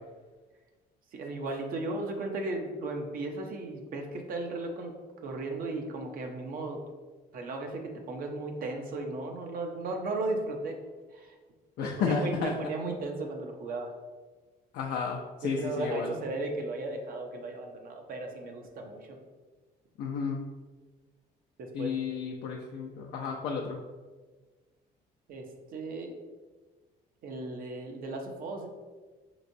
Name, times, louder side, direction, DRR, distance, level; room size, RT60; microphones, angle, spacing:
voice 1, 1.1-4.9 5.2-6.8 7.3-10.8 11.1-11.3 11.8-13.9 15.4-19.2 21.6-21.9 25.3-26.1 27.2-28.7, right 2 dB, 60° right, 3 dB, 0.7 m, -36 dB
voice 2, 11.8-12.6 14.7-16.2 20.0-20.4 21.7-23.8, left 5 dB, 75° left, 0 dB, 0.5 m, -32 dB
5.0 x 3.0 x 2.7 m, 1.3 s
cardioid pair, 110°, 17 cm